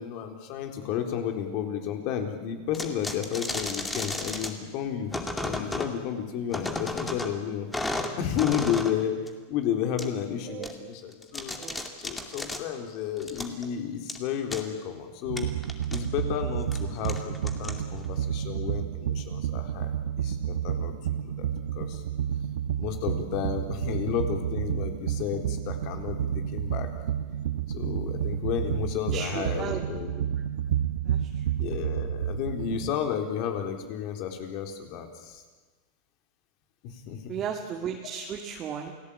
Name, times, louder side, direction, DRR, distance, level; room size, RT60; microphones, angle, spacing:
voice 1, 0.0-5.1 5.4-7.7 8.2-9.1 9.5-11.6 12.0-15.5 15.9-19.9 20.2-20.9 21.4-21.5 21.8-22.0 22.8-26.9 27.7-30.1 31.6-35.4 36.8-37.3, left 9 dB, 50° left, 5 dB, 4.0 m, -32 dB
sound 1, 2.7-4.5 5.1-5.9 6.5-7.3 7.7-9.0 9.3-9.4 10.0-10.1 10.6-10.7 11.1-12.6 13.2-13.7 14.1-14.2 14.5-14.6 15.4-16.0 16.6-16.8 17.0-18.0, left 2 dB, 10° left, 2.4 m, -33 dB
voice 2, 11.6-11.9 14.5-14.6 29.1-29.8 30.1-30.2 31.0-31.4 37.3-38.9, right 7 dB, 30° right, 1 dB, 2.4 m, -35 dB
sound 2, 15.3-32.9, right 9 dB, 85° right, 1.1 m, -30 dB
29.0 x 18.5 x 8.7 m, 1.4 s
supercardioid pair, 150°, 0 cm